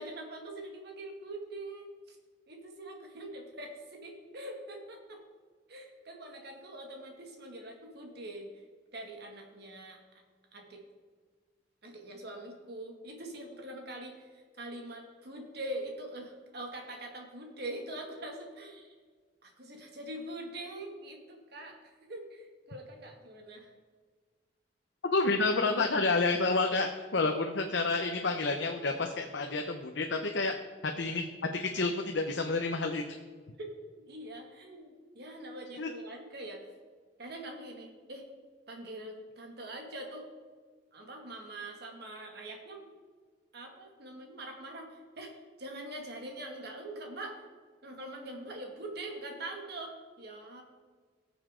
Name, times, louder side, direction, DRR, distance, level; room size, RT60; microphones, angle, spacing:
voice 1, 0.0-2.2 2.5-5.2 5.7-8.5 8.9-10.0 10.5-10.8 11.8-14.3 14.6-18.9 19.4-23.7 27.3-27.4 33.6-33.7 34.1-36.7 37.2-38.3 38.7-40.3 40.9-42.9 43.5-47.4 47.8-50.6, right 1 dB, 60° right, 2 dB, 2.2 m, -43 dB
voice 2, 25.1-30.5 30.8-31.3 31.5-33.0 35.8-35.9, left 3 dB, 75° left, 3 dB, 0.8 m, -29 dB
19.0 x 7.1 x 3.8 m, 1.5 s
head